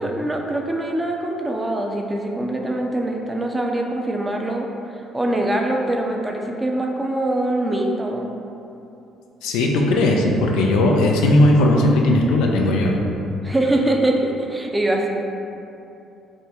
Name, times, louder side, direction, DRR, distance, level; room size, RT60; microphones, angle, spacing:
voice 1, 0.0-4.7 5.1-8.3 13.4-15.1, right 1 dB, 20° right, 1 dB, 0.5 m, -23 dB
voice 2, 9.4-13.0, left 1 dB, 75° left, 0 dB, 0.4 m, -17 dB
3.5 x 2.1 x 4.3 m, 2.8 s
hypercardioid pair, 55°, 0 cm